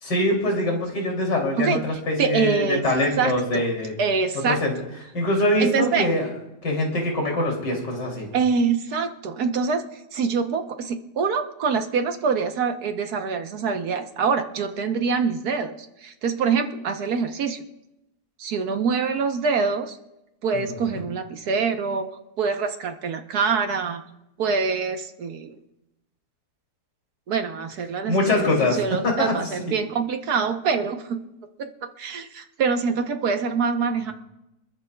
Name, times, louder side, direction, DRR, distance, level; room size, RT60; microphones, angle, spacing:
voice 1, 0.0-3.9 4.5-4.8 5.1-6.3 6.6-8.3 20.5-21.0 28.1-29.5, left 1 dB, 90° left, 0 dB, 3.6 m, -24 dB
voice 2, 2.2-2.8 3.2-3.6 4.0-4.6 5.6-6.1 8.3-9.8 10.1-15.8 16.0-17.6 18.4-20.0 20.4-24.0 24.4-25.5 27.3-31.2 31.6-31.7 32.0-34.1, right 5 dB, 65° right, 6 dB, 1.5 m, -25 dB
26.0 x 14.0 x 2.3 m, 0.93 s
omnidirectional pair, 1.8 m